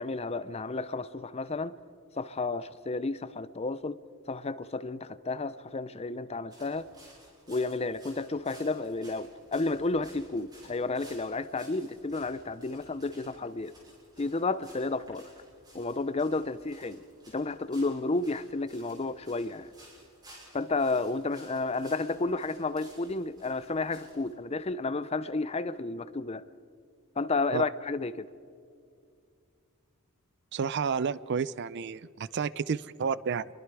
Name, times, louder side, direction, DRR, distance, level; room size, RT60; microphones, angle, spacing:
voice 1, 0.0-1.7 2.2-4.0 4.3-6.9 7.5-13.7 14.2-15.3 15.7-17.0 17.3-19.7 20.5-26.5 27.2-28.3, left 3 dB, 30° left, 0.5 m, -32 dB
sound 1, 6.5-24.3, right 1 dB, 20° right, 6.8 m, -56 dB
voice 2, 30.5-33.5, right 6 dB, 50° right, 0.4 m, -31 dB
28.0 x 22.5 x 4.8 m
head